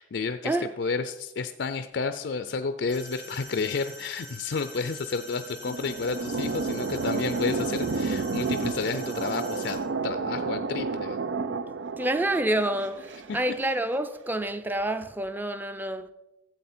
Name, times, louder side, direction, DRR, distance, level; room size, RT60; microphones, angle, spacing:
voice 1, 0.0-9.8 10.0-11.2, left 4 dB, 70° left, 0.5 m, -31 dB
sound 1, 2.9-9.7, equal, 40° right, 4.7 m, -45 dB
sound 2, 5.2-13.7, right 4 dB, 85° right, 0.5 m, -31 dB
voice 2, 12.0-16.1, right 1 dB, 10° right, 0.5 m, -28 dB
13.0 x 8.0 x 4.3 m
head